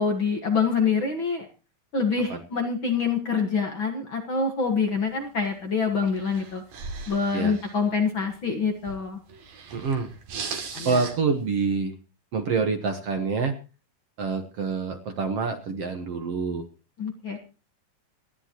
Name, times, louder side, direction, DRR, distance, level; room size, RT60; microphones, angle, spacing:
voice 1, 0.0-1.5 1.9-6.6 7.1-9.2 10.7-11.0 17.0-17.4, left 5 dB, 45° left, 4 dB, 1.8 m, -26 dB
sound 1, 4.7-11.7, right 5 dB, 80° right, 4.3 m, -40 dB
voice 2, 9.7-10.1 10.9-11.9 12.3-13.6 14.2-16.6, right 4 dB, 55° right, 6 dB, 1.9 m, -26 dB
27.0 x 11.0 x 3.0 m, 0.34 s
omnidirectional pair, 4.0 m